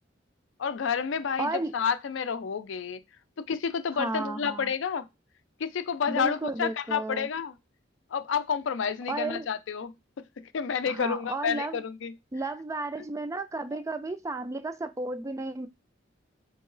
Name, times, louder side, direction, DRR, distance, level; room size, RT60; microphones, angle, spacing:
voice 1, 0.6-3.0 3.4-5.1 5.6-7.5 8.1-9.9 10.4-12.1, left 6 dB, 75° left, 0.4 m, -30 dB
voice 2, 1.4-1.7 3.9-4.7 6.1-7.3 9.1-9.5 10.9-11.8 12.3-15.7, right 2 dB, 15° right, 0.3 m, -33 dB
3.8 x 2.9 x 3.8 m
head